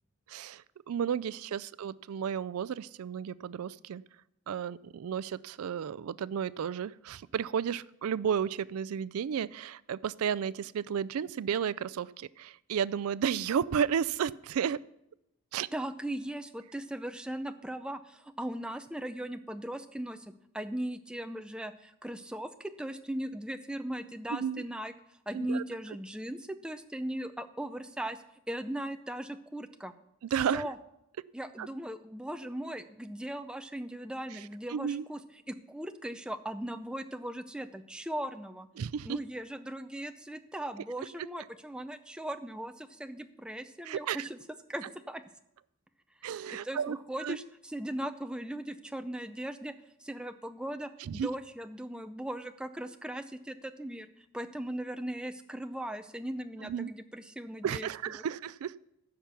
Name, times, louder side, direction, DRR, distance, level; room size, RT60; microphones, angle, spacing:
voice 1, 0.3-4.0 4.5-14.8 15.5-15.7 24.3-24.6 25.3-25.6 30.3-30.7 31.6-31.7 34.7-35.0 38.8-39.2 43.8-44.3 46.2-47.4 51.0-51.3 56.6-56.9 57.6-58.7, right 8 dB, 80° right, 18 dB, 0.4 m, -33 dB
voice 2, 15.7-24.9 25.3-29.9 30.5-30.8 31.3-35.2 35.5-38.7 39.0-44.4 44.7-45.2 46.2-49.7 50.0-58.2, right 1 dB, 5° right, 8 dB, 0.4 m, -38 dB
15.0 x 5.9 x 6.8 m, 0.82 s
head